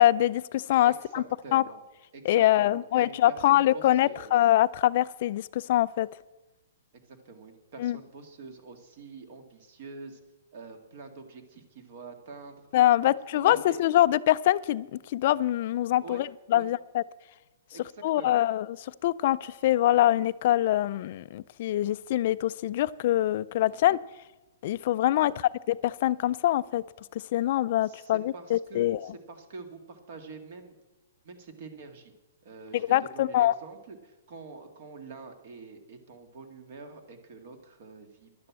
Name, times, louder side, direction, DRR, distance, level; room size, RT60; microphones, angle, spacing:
voice 1, 0.0-1.2 1.5-1.6 2.3-6.1 7.8-8.0 12.7-17.0 18.0-24.0 24.6-26.8 27.3-29.0 32.7-33.5, left 13 dB, 45° left, 16 dB, 0.3 m, -24 dB
voice 2, 0.8-1.8 2.1-4.3 7.1-10.2 10.5-12.6 13.0-13.8 16.0-16.2 16.5-16.7 17.7-18.4 23.7-23.9 25.2-25.3 27.8-30.7 31.2-32.1 32.4-38.5, right 4 dB, 50° right, 7 dB, 2.0 m, -46 dB
11.0 x 9.5 x 7.4 m, 1.1 s
hypercardioid pair, 160°, 0 cm